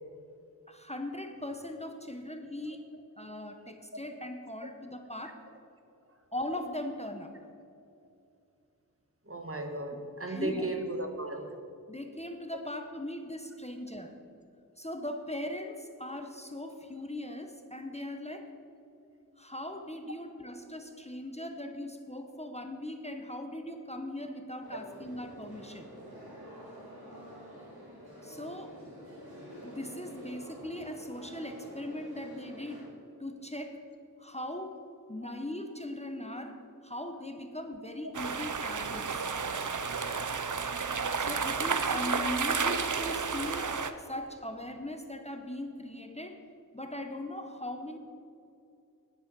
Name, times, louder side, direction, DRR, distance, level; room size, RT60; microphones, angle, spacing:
voice 1, 0.7-2.9 3.2-5.4 6.3-7.4 10.2-10.7 11.9-14.2 14.8-18.5 19.4-25.9 28.2-28.9 29.6-32.9 33.2-33.8 34.2-39.3 41.2-46.4 46.7-48.0, left 1 dB, 20° left, 5 dB, 0.8 m, -39 dB
voice 2, 9.2-11.6 35.2-35.3 38.0-38.1, right 2 dB, 40° right, 5 dB, 1.2 m, -36 dB
sound 1, 24.6-32.8, equal, 90° right, 3.0 m, -48 dB
sound 2, 38.1-43.9, right 5 dB, 55° right, 0.6 m, -31 dB
10.0 x 9.0 x 5.3 m, 2.6 s
wide cardioid pair, 40°, 36 cm